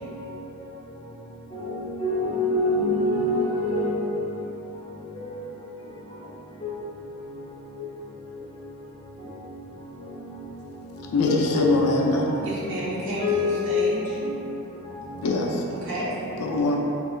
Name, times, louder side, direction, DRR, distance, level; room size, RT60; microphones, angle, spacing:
voice 1, 1.5-4.0 6.6-6.7 11.3-11.7 12.0-12.1 13.2-13.9 16.3-16.4, left 2 dB, 25° left, -7 dB, 0.5 m, -25 dB
voice 2, 11.1-12.3 15.2-15.6 16.4-16.8, left 3 dB, 80° left, -1 dB, 0.4 m, -22 dB
voice 3, 12.4-14.2 15.7-16.1, right 1 dB, 55° right, -7 dB, 0.8 m, -31 dB
2.9 x 2.8 x 2.4 m, 3.0 s
head